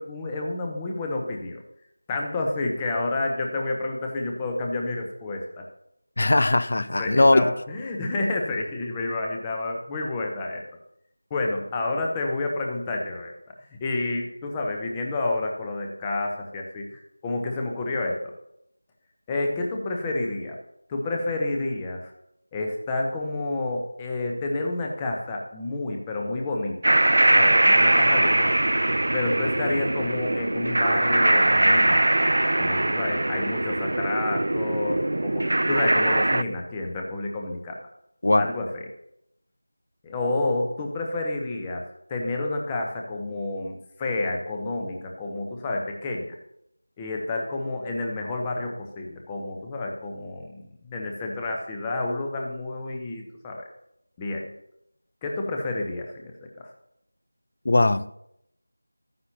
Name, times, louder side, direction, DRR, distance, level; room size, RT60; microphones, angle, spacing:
voice 1, 0.0-1.6 2.1-5.6 6.8-10.6 11.3-13.3 13.8-18.3 19.3-20.5 20.9-22.1 22.5-28.7 29.1-32.2 32.6-37.8 38.4-38.9 40.0-41.8 42.1-46.3 47.0-53.6 54.2-54.5 55.2-56.3, left 2 dB, 10° left, 1 dB, 0.9 m, -29 dB
voice 2, 6.2-7.5 38.2-38.5 57.7-58.2, left 2 dB, 45° left, 15 dB, 0.5 m, -20 dB
sound 1, 26.8-36.4, right 1 dB, 55° right, 0.3 m, -21 dB
12.5 x 9.4 x 2.9 m, 0.78 s
figure-of-eight pair, 170°, 0 cm